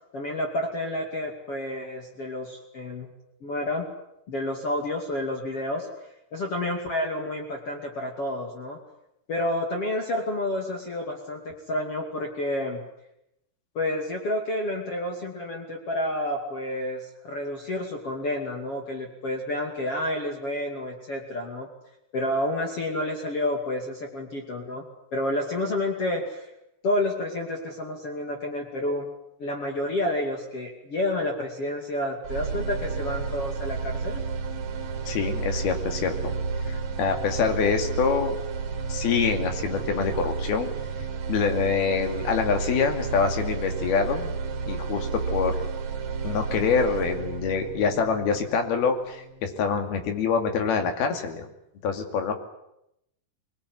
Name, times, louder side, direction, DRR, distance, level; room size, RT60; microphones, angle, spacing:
voice 1, 0.1-3.1 3.4-3.9 4.3-5.9 6.3-8.8 9.3-12.8 13.7-21.7 22.1-24.8 25.1-26.5 26.8-29.1 29.4-34.2, left 1 dB, 40° left, 1 dB, 3.2 m, -29 dB
sound 1, 32.2-50.3, right 5 dB, 50° right, 2.9 m, -32 dB
voice 2, 35.1-36.3 36.7-38.4 38.9-40.7 41.3-44.3 44.7-45.6 46.2-51.5 51.8-52.3, left 6 dB, 70° left, 6 dB, 4.4 m, -25 dB
25.0 x 21.0 x 9.6 m, 0.82 s
omnidirectional pair, 4.7 m